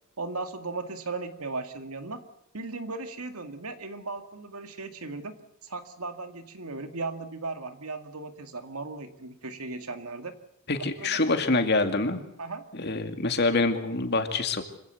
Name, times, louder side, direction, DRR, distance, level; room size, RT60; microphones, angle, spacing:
voice 1, 0.2-2.2 2.5-5.3 5.6-10.3 10.8-11.2 12.4-12.6, right 3 dB, 80° right, 8 dB, 2.2 m, -37 dB
voice 2, 10.7-12.2 12.7-14.6, left 3 dB, 50° left, 7 dB, 2.4 m, -25 dB
25.5 x 16.5 x 8.0 m, 0.82 s
head